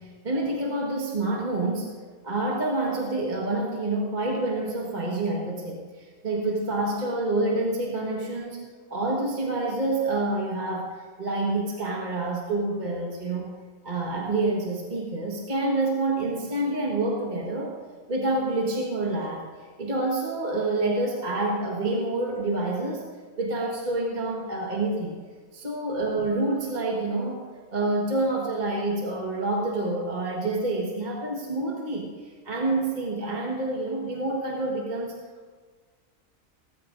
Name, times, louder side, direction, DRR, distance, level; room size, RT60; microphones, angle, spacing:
voice 1, 0.0-1.9 2.2-13.5 13.8-17.8 18.1-23.1 23.4-25.2 25.5-35.2, right 2 dB, 35° right, -2 dB, 1.5 m, -28 dB
18.5 x 15.0 x 2.6 m, 1.5 s
omnidirectional pair, 1.4 m